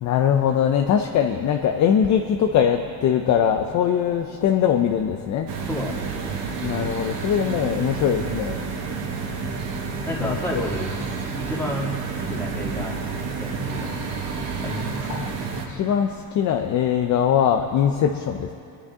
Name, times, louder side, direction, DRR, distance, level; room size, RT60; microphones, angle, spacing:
voice 1, 0.0-5.5 6.6-8.6 9.1-9.2 10.2-10.6 15.1-15.3 15.7-18.5, left 8 dB, 45° left, 5 dB, 0.6 m, -21 dB
sound 1, 5.5-15.7, right 5 dB, 85° right, 1.8 m, -30 dB
voice 2, 5.7-6.3 10.1-10.9 11.4-13.0 13.4-13.9 14.6-15.1, left 1 dB, 5° left, -4 dB, 2.1 m, -30 dB
22.5 x 10.0 x 3.7 m, 2.5 s
cardioid pair, 150°, 42 cm